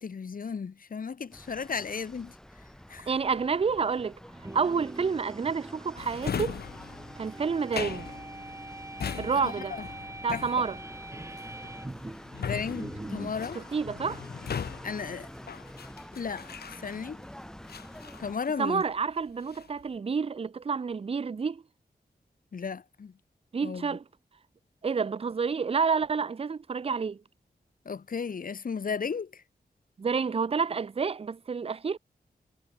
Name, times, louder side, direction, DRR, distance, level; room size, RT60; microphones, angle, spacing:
voice 1, 0.0-2.4 2.9-3.1 9.3-9.9 10.3-10.6 12.4-13.6 14.8-15.3 16.1-17.2 18.2-18.8 22.5-23.1 23.6-24.0 27.8-29.4, left 5 dB, 60° left, 1.4 m, -35 dB
sound 1, 1.3-18.4, equal, 5° left, 2.2 m, -48 dB
voice 2, 3.1-4.2 4.5-6.6 7.2-8.1 9.2-9.7 10.2-10.8 13.5-14.2 18.6-21.6 23.5-24.0 24.8-27.2 30.0-32.0, right 5 dB, 35° right, 0.6 m, -29 dB
sound 2, 4.3-13.4, right 2 dB, 15° right, 2.3 m, -43 dB
Drawer open or close, 6.0-17.2 17.7-19.0 19.3-19.8, left 7 dB, 75° left, 1.0 m, -39 dB
wide cardioid pair, 120°, 16 cm